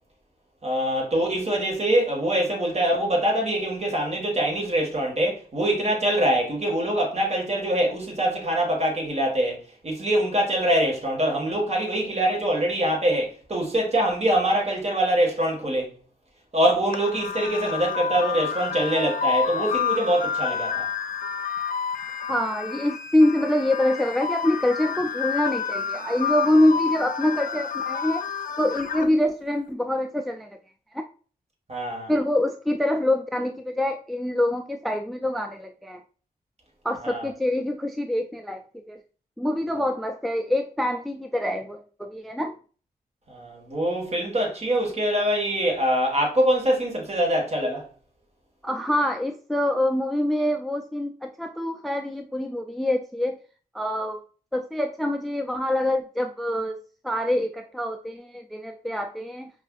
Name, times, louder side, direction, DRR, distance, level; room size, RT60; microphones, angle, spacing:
voice 1, 0.6-15.9 16.5-20.9 31.7-32.1 37.0-37.2 43.3-47.8, right 1 dB, 45° right, 1.5 m, -24 dB
sound 1, 16.9-29.1, left 7 dB, 65° left, 0.6 m, -29 dB
voice 2, 22.3-28.3 28.6-30.5 30.9-31.0 32.1-36.0 36.8-39.0 39.4-42.6 48.6-53.4 53.7-54.2 54.5-56.8 57.0-59.5, left 1 dB, ahead, 0.3 m, -25 dB
5.3 x 2.5 x 2.3 m
cardioid pair, 70°, 16 cm